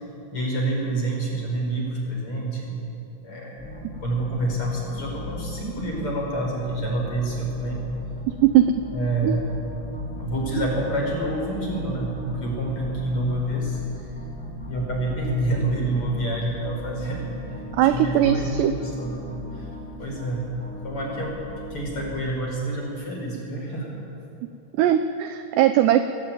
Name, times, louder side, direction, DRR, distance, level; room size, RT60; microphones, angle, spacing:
voice 1, 0.3-2.9 3.2-3.7 4.0-7.8 8.9-9.6 10.2-14.1 14.7-19.2 19.5-19.7 20.0-21.4 21.7-24.0, right 1 dB, 30° left, -2 dB, 5.4 m, -28 dB
sound 1, 3.6-22.2, left 1 dB, ahead, 2.6 m, -38 dB
voice 2, 8.4-8.8 9.2-9.4 17.8-18.7 24.8-26.0, right 11 dB, 80° right, 9 dB, 2.5 m, -19 dB
22.0 x 18.0 x 8.9 m, 2.8 s
omnidirectional pair, 5.7 m